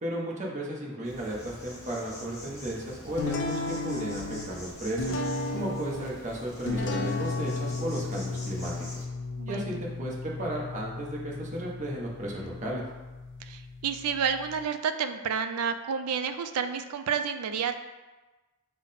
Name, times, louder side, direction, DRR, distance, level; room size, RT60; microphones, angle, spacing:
voice 1, 0.0-5.2 5.5-9.0 9.5-12.8, right 1 dB, 35° right, -3 dB, 0.8 m, -34 dB
Insect, 1.0-9.1, left 1 dB, 15° left, 1.0 m, -46 dB
sound 1, 3.2-14.6, left 3 dB, 55° left, 0.4 m, -35 dB
voice 2, 9.4-9.8 13.4-17.8, right 6 dB, 85° right, 9 dB, 0.4 m, -30 dB
5.6 x 2.1 x 4.1 m, 1.2 s
head